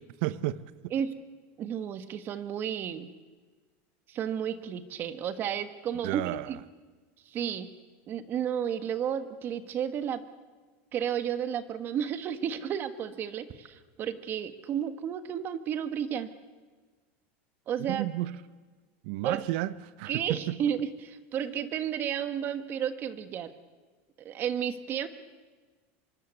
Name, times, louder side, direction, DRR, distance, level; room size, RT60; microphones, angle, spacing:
voice 1, 0.2-0.6 6.0-6.5 17.9-18.4 19.0-19.7 20.0-20.6, right 16 dB, 65° right, 0.9 m, -31 dB
voice 2, 1.6-3.1 4.1-6.6 7.3-7.7 8.1-10.2 10.9-16.3 17.7-18.0 19.2-19.4 20.1-23.5 24.2-25.1, right 9 dB, 35° right, 1.4 m, -32 dB
25.0 x 22.5 x 8.2 m
supercardioid pair, 155°, 6 cm